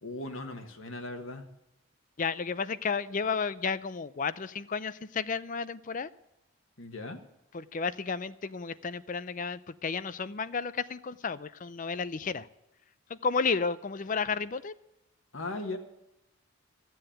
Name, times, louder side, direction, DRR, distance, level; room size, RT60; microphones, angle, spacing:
voice 1, 0.0-1.4 6.8-7.2 15.3-15.8, left 2 dB, 70° left, 4 dB, 1.5 m, -38 dB
voice 2, 2.2-6.1 7.5-12.5 13.1-14.7, left 5 dB, 40° left, 15 dB, 0.5 m, -32 dB
14.5 x 7.8 x 8.9 m, 0.90 s
head